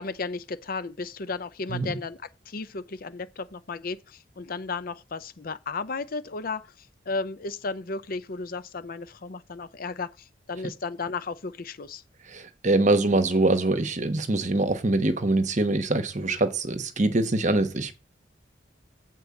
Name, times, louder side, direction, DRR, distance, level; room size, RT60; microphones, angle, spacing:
voice 1, 0.0-2.2 2.5-12.0, left 4 dB, 50° left, 0.6 m, -34 dB
voice 2, 12.3-17.9, right 2 dB, 40° right, 1.1 m, -24 dB
8.1 x 4.5 x 7.0 m
head